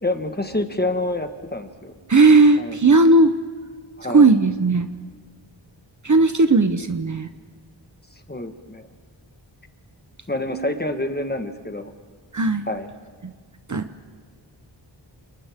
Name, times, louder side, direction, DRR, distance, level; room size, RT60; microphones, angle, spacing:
voice 1, 0.0-1.9 2.6-2.8 4.0-4.3 8.3-8.9 10.3-11.9 12.7-12.9, left 1 dB, 20° left, 6 dB, 1.4 m, -27 dB
voice 2, 2.1-3.3 4.1-4.9 6.0-7.3 12.3-12.6 13.2-13.3 13.7-13.9, right 3 dB, 40° right, 9 dB, 0.9 m, -16 dB
29.0 x 28.5 x 3.7 m, 1.5 s
wide cardioid pair, 90°, 46 cm